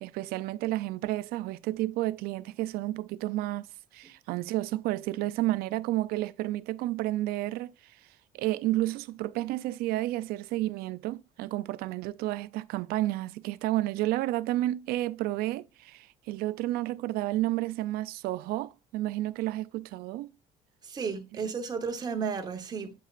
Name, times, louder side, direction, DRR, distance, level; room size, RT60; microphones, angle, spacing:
voice 1, 0.0-3.7 3.9-8.0 8.3-20.3, right 16 dB, 85° right, 0.5 m, -31 dB
voice 2, 20.8-22.9, right 5 dB, 25° right, 1.1 m, -33 dB
8.5 x 5.4 x 2.5 m
cardioid pair, 175°, 15 cm